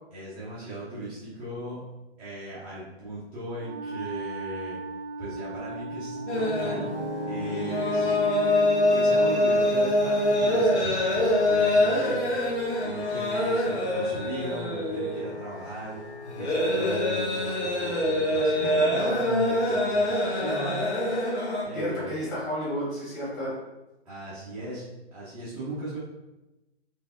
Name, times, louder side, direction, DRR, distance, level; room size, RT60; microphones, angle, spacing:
voice 1, 0.1-1.8 2.2-4.8 5.2-6.9 7.3-8.2 8.9-12.2 12.8-16.0 16.3-20.8 21.6-22.1 24.0-24.9 25.1-26.0, right 2 dB, 5° right, -15 dB, 0.5 m, -37 dB
Wind instrument woodwind instrument, 3.5-8.9, right 2 dB, 80° right, 0.8 m, -37 dB
sound 1, 6.0-14.9, right 1 dB, 65° left, 1.4 m, -40 dB
sound 2, 6.3-21.6, left 1 dB, 85° left, 1.3 m, -25 dB
voice 2, 18.6-19.0 21.7-23.6, equal, 20° left, -7 dB, 1.4 m, -32 dB
4.3 x 2.7 x 2.4 m, 1.0 s
figure-of-eight pair, 135°, 33 cm